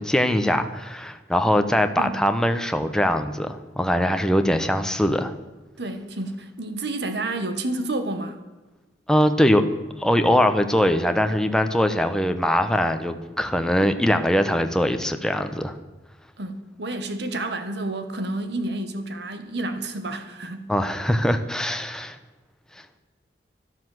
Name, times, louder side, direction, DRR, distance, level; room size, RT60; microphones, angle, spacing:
voice 1, 0.0-5.3 9.1-9.7 10.0-15.8 20.7-22.2, equal, 5° left, 7 dB, 0.9 m, -22 dB
voice 2, 5.8-8.4 16.4-20.7, right 2 dB, 65° right, 8 dB, 1.7 m, -30 dB
12.5 x 12.0 x 7.9 m, 1.2 s
head